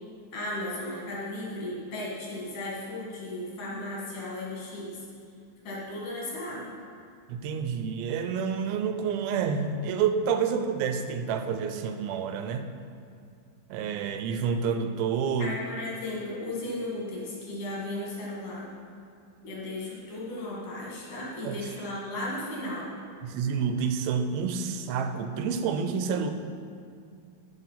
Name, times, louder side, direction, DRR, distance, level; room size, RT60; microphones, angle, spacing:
voice 1, 0.3-5.0 5.7-6.8 15.4-18.7 19.4-22.9, left 1 dB, 65° left, -5 dB, 3.5 m, -35 dB
voice 2, 7.3-12.7 13.7-15.6 21.4-21.6 23.2-26.3, right 6 dB, 85° right, 7 dB, 2.5 m, -28 dB
13.0 x 4.8 x 5.7 m, 2.3 s
omnidirectional pair, 4.3 m